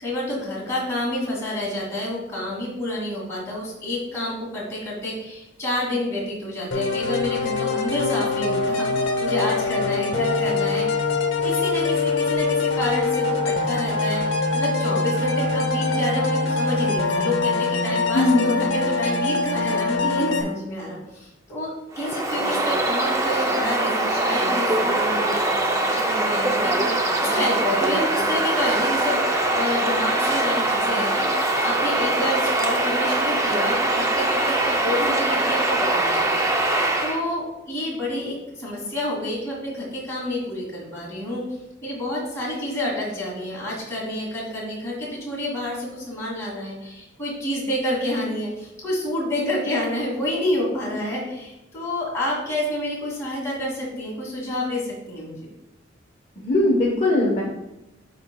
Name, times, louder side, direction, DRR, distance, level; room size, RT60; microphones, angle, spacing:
voice 1, 0.0-10.8 11.4-21.7 22.0-36.7 37.0-41.4 41.8-55.4, left 1 dB, 15° left, -6 dB, 2.3 m, -28 dB
sound 1, 6.7-20.4, left 3 dB, 60° left, 1.0 m, -23 dB
voice 2, 18.1-18.6 56.4-57.4, left 2 dB, 35° left, -4 dB, 1.0 m, -20 dB
Bird vocalization bird call bird song, 21.9-37.2, right 2 dB, 15° right, 0.5 m, -22 dB
11.5 x 4.1 x 2.3 m, 0.91 s
head